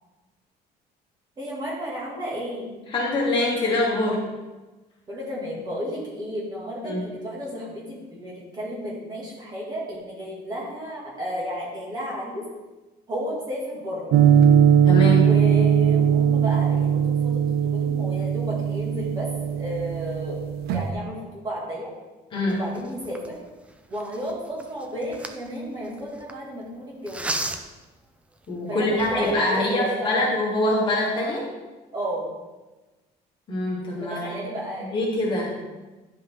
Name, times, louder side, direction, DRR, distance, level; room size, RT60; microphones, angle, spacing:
voice 1, 1.4-2.8 5.1-12.4 13.1-14.1 15.2-20.4 20.7-21.9 22.5-23.4 23.9-27.3 28.7-30.1 31.9-32.3 34.0-35.2, equal, 25° right, -5 dB, 2.2 m, -33 dB
voice 2, 2.9-4.2 6.8-7.0 14.9-15.3 22.3-22.6 28.5-31.5 33.5-34.3 34.9-35.5, left 1 dB, 30° left, -4 dB, 1.9 m, -24 dB
sound 1, 14.1-20.9, right 8 dB, 70° right, 0.6 m, -20 dB
sound 2, 22.4-26.3 27.1-27.8 28.4-28.5 28.9-29.4, right 2 dB, 5° right, 0.4 m, -35 dB
10.5 x 5.4 x 3.7 m, 1.2 s
cardioid pair, 180°, 17 cm